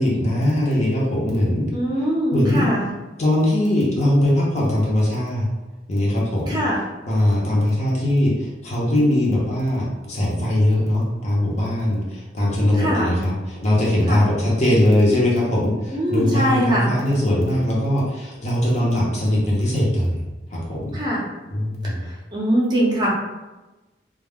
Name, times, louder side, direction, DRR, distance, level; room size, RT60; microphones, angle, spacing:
voice 1, 0.0-1.7 2.3-2.7 3.2-5.5 5.9-6.6 7.1-21.0 21.5-22.0, left 1 dB, 40° left, -5 dB, 0.6 m, -20 dB
voice 2, 1.7-2.9 6.5-6.8 12.8-13.2 14.1-14.3 15.9-17.0 20.9-21.2 21.8-21.9 22.3-23.1, equal, 25° right, -5 dB, 0.6 m, -22 dB
2.3 x 2.0 x 3.4 m, 1.1 s
head